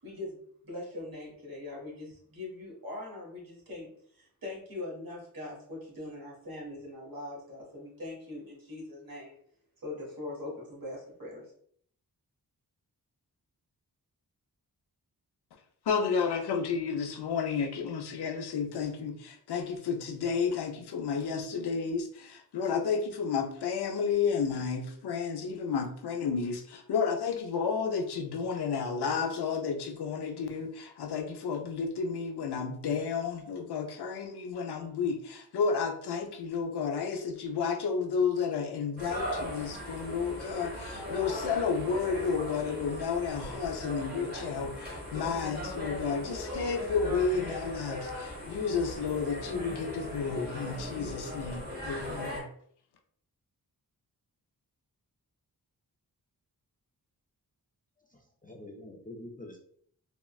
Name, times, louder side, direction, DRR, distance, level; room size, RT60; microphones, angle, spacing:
voice 1, 0.0-9.3 9.8-11.5, left 2 dB, 60° right, -4 dB, 1.4 m, -42 dB
voice 2, 15.9-52.5, left 5 dB, 85° left, 5 dB, 0.5 m, -31 dB
sound 1, 39.0-52.4, equal, 25° right, 1.0 m, -38 dB
voice 3, 58.0-59.6, left 1 dB, 25° left, 0 dB, 0.4 m, -46 dB
3.6 x 2.0 x 2.3 m, 0.63 s
wide cardioid pair, 80°, 38 cm